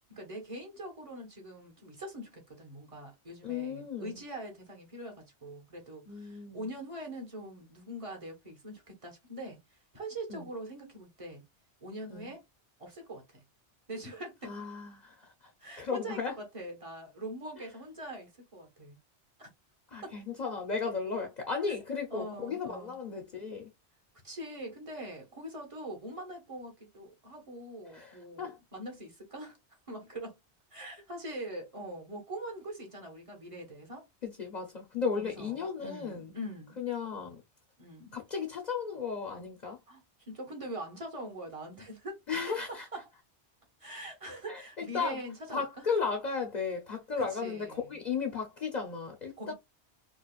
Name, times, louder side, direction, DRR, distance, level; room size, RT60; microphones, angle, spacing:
voice 1, 0.1-11.4 11.8-12.4 12.8-13.4 13.9-14.5 15.6-19.0 19.4-19.5 19.9-20.2 22.1-23.0 24.2-29.6 29.9-30.4 30.7-34.0 35.1-36.8 37.8-38.1 39.9-42.2 42.7-43.1 43.8-45.9 47.2-48.0 49.4-49.5, right 1 dB, 30° right, 1.4 m, -43 dB
voice 2, 3.4-4.2 6.1-6.7 10.3-10.5 12.1-12.3 14.4-15.3 15.8-16.4 17.6-17.7 19.9-23.7 27.9-28.6 34.2-36.3 36.8-37.4 38.1-39.8 42.3-42.9 44.5-45.2 45.5-49.5, left 5 dB, 45° left, 0.8 m, -35 dB
4.7 x 2.4 x 2.4 m
omnidirectional pair, 1.2 m